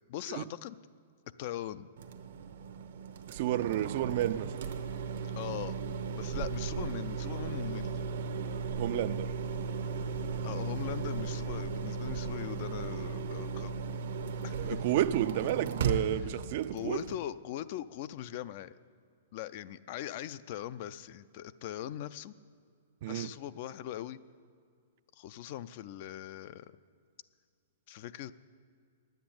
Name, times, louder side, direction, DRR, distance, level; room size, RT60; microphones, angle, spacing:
voice 1, 0.1-0.8 1.4-1.9 5.4-5.8 6.1-8.0 10.4-13.8 14.4-14.8 16.7-18.7 19.3-22.3 23.1-24.2 25.2-26.7 27.9-28.3, left 12 dB, 50° left, 0.4 m, -40 dB
sound 1, 2.0-17.2, right 5 dB, 75° right, 0.9 m, -36 dB
voice 2, 3.3-4.5 8.8-9.3 14.6-17.0 23.0-23.3, right 12 dB, 55° right, 0.4 m, -31 dB
9.5 x 8.0 x 8.7 m
hypercardioid pair, 130°, 0 cm